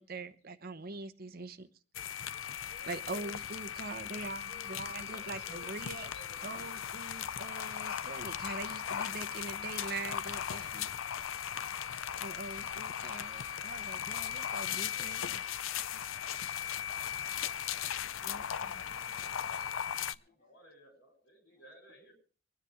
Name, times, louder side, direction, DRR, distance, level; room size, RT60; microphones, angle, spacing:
voice 1, 0.0-1.7 2.9-6.1 6.4-10.9 12.2-15.4 18.2-18.9, right 3 dB, 50° right, 0.9 m, -43 dB
sound 1, 1.9-20.1, left 9 dB, 90° left, 0.6 m, -38 dB
voice 2, 2.4-2.8 4.7-6.8 13.1-13.5 20.2-22.1, equal, 75° left, 7.3 m, -59 dB
voice 3, 19.9-20.6 21.5-21.6, left 2 dB, 40° left, 0.9 m, -73 dB
24.5 x 10.0 x 3.5 m
head